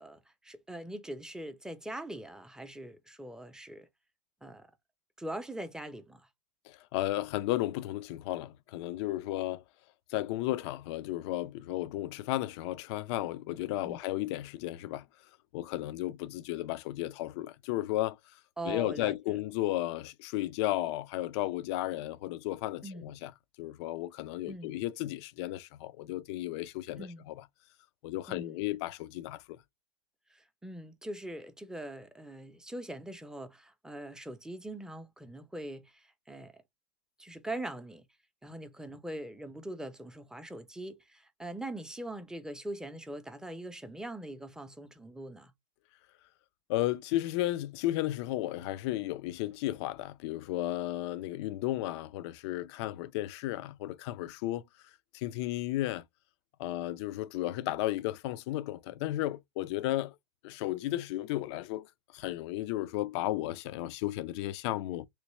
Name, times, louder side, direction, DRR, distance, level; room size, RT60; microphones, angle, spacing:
voice 1, 0.0-3.9 4.4-4.7 5.2-6.3 13.8-14.0 18.6-19.4 22.8-23.1 24.5-24.7 27.0-27.3 28.3-28.6 30.3-36.6 37.2-38.0 38.4-45.5, right 1 dB, 5° right, 0.5 m, -42 dB
voice 2, 6.7-9.6 10.1-15.1 15.5-18.2 18.7-23.3 23.6-27.4 28.0-29.6 46.7-54.6 55.1-56.0 56.6-60.1 60.4-65.1, left 15 dB, 65° left, 0.5 m, -34 dB
3.2 x 2.9 x 3.0 m
supercardioid pair, 130°, 15 cm